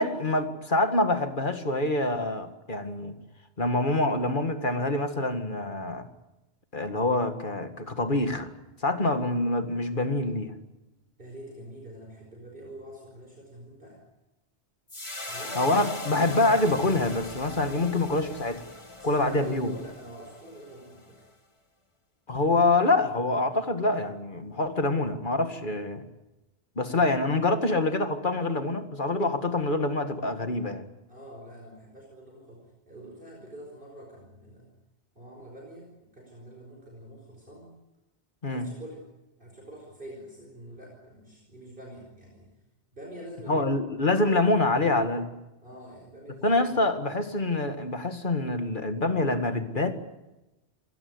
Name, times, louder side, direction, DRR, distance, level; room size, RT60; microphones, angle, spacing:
voice 1, 0.0-3.1 3.6-6.1 6.7-8.5 8.8-10.5 15.6-18.6 19.0-19.7 22.3-26.0 26.8-30.8 38.4-38.7 43.5-45.3 46.4-50.1, left 2 dB, 45° left, 8 dB, 2.1 m, -26 dB
voice 2, 11.2-14.0 15.3-15.6 19.0-21.2 31.1-34.7 35.2-37.8 38.5-39.0 39.4-42.5 42.9-43.7 45.6-46.8, right 1 dB, 50° right, 0 dB, 5.3 m, -45 dB
sound 1, 14.9-21.3, left 1 dB, 25° left, 2.1 m, -40 dB
26.0 x 17.5 x 9.6 m, 1.0 s
omnidirectional pair, 1.2 m